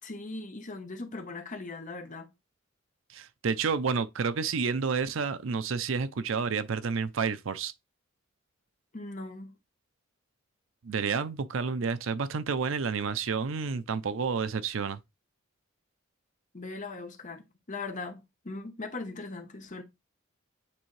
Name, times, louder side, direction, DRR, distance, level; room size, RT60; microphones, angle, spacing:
voice 1, 0.0-2.3 8.9-9.5 16.5-19.8, left 3 dB, 40° left, 1.0 m, -39 dB
voice 2, 3.1-7.7 10.8-15.0, right 5 dB, 70° right, 0.5 m, -30 dB
8.8 x 3.3 x 3.2 m
head